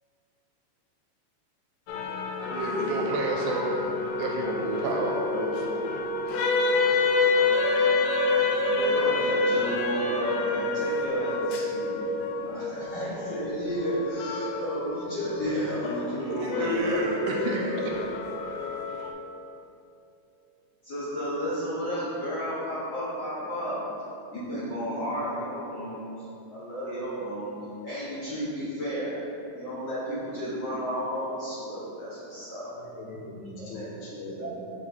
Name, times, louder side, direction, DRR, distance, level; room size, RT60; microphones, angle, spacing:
sound 1, 1.9-19.1, left 3 dB, 90° left, 2.3 m, -28 dB
voice 1, 2.5-3.9 4.2-5.9 6.3-6.5 16.2-18.1, right 2 dB, 80° right, -1 dB, 2.0 m, -30 dB
voice 2, 8.7-12.0 12.4-17.4 20.8-23.8 24.3-27.5 27.8-29.2 29.5-32.7 33.6-33.9 34.3-34.5, equal, 50° left, -12 dB, 1.4 m, -32 dB
voice 3, 32.8-34.5, left 1 dB, 75° left, -4 dB, 1.9 m, -41 dB
5.8 x 4.3 x 4.3 m, 2.8 s
omnidirectional pair, 3.9 m